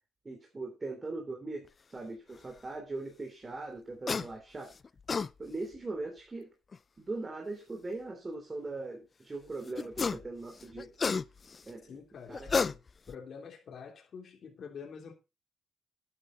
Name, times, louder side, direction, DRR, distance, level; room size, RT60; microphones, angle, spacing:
voice 1, 0.2-1.6 1.9-4.7 5.4-6.5 7.1-10.9 11.7-11.9 12.3-12.5, right 3 dB, 25° right, 3.3 m, -40 dB
sound 1, 4.1-4.3 4.8-5.3 6.7-6.8 9.8-10.3 10.6-11.6 12.3-13.1, left 5 dB, 35° left, 0.5 m, -31 dB
voice 2, 11.8-12.8 13.1-15.1, left 6 dB, 55° left, 3.2 m, -46 dB
11.5 x 9.8 x 3.9 m
cardioid pair, 90°, 0 cm